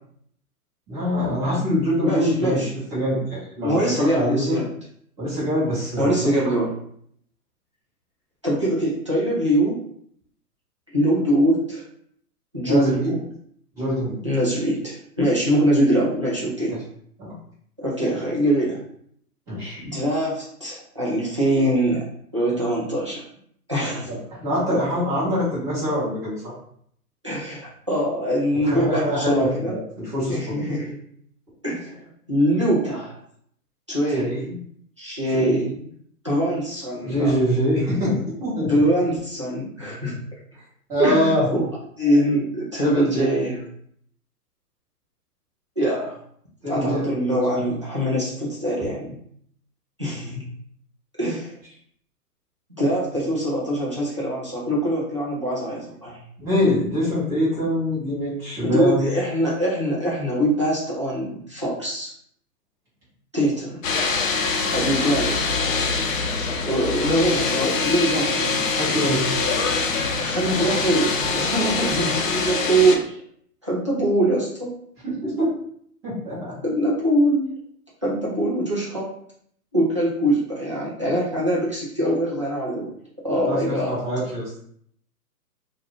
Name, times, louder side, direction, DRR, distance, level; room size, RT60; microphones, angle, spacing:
voice 1, 0.9-2.6 2.9-4.6 5.2-6.5 12.6-13.1 13.8-14.2 16.7-16.8 17.2-17.3 19.5-19.8 24.1-24.2 24.4-26.5 28.6-30.5 34.1-34.6 35.3-35.7 37.0-38.8 40.9-41.5 42.8-43.3 46.6-47.4 56.4-59.0 68.8-69.2 75.0-75.5 76.0-76.5 83.5-84.4, equal, 5° right, -10 dB, 0.8 m, -24 dB
voice 2, 2.0-2.8 3.6-4.7 6.0-6.7 8.4-9.8 10.9-11.8 12.5-13.2 14.2-16.8 17.8-18.8 19.8-22.0 22.3-23.2 23.7-24.1 27.2-29.7 30.3-31.0 31.6-33.2 33.9-34.4 35.0-35.7 36.2-37.4 38.6-40.2 41.0-41.7 42.0-43.6 45.8-46.2 46.7-49.2 50.0-50.4 51.2-51.5 52.8-56.2 58.6-62.1 63.3-63.8 64.7-65.5 66.7-68.6 70.2-73.2 73.6-74.7 76.6-77.5 78.0-79.1 79.7-82.9 83.2-84.0, right 1 dB, 20° right, -7 dB, 0.4 m, -23 dB
sound 1, 63.8-72.9, left 4 dB, 55° left, 0.6 m, -24 dB
2.4 x 2.3 x 3.2 m, 0.65 s
hypercardioid pair, 140°, 48 cm